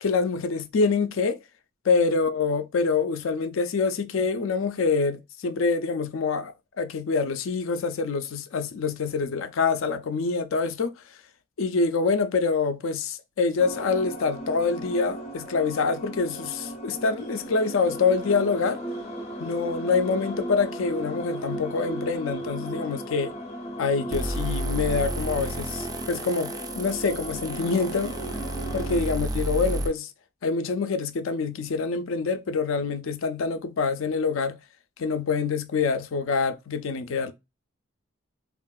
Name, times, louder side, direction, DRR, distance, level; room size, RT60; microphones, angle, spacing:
voice 1, 0.0-1.4 1.9-10.9 11.6-18.8 19.4-23.3 23.8-28.2 28.7-30.1 30.4-34.6 35.0-37.3, left 4 dB, 70° left, 0.4 m, -26 dB
sound 1, 13.6-29.0, right 1 dB, 30° left, 0.7 m, -36 dB
sound 2, 24.1-29.9, right 1 dB, 20° right, 0.3 m, -32 dB
3.5 x 2.4 x 2.2 m
head